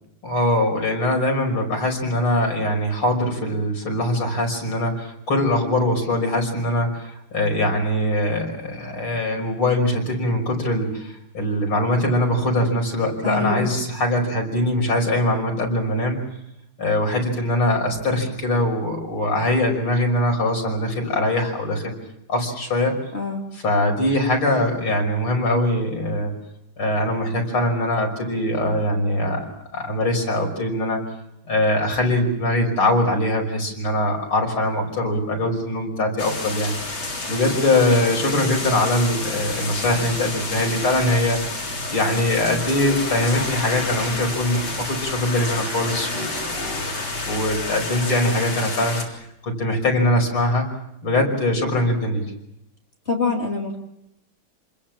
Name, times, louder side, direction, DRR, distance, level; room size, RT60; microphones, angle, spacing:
voice 1, 0.2-16.3 16.8-22.0 22.3-23.0 23.5-26.3 26.8-29.5 29.7-31.0 31.5-49.0 49.4-50.7 51.0-52.2, left 1 dB, 85° left, 1 dB, 6.6 m, -22 dB
voice 2, 13.2-13.7 23.1-23.4 53.1-53.8, left 4 dB, 30° left, 1 dB, 2.7 m, -24 dB
sound 1, 36.2-49.0, left 3 dB, 70° left, 4.5 m, -29 dB
28.0 x 21.0 x 7.5 m, 0.82 s
omnidirectional pair, 2.3 m